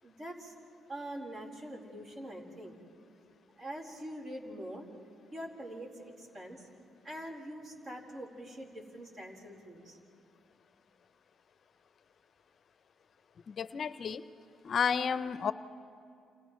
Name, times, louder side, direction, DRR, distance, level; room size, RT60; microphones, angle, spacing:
voice 1, 0.0-0.5 0.9-2.7 3.6-4.9 5.3-6.7 7.0-10.0, right 1 dB, 45° right, -1 dB, 4.2 m, -44 dB
voice 2, 13.6-14.2 14.6-15.5, left 6 dB, 50° left, 13 dB, 0.6 m, -31 dB
29.5 x 28.0 x 3.1 m, 2.5 s
cardioid pair, 90°, 0 cm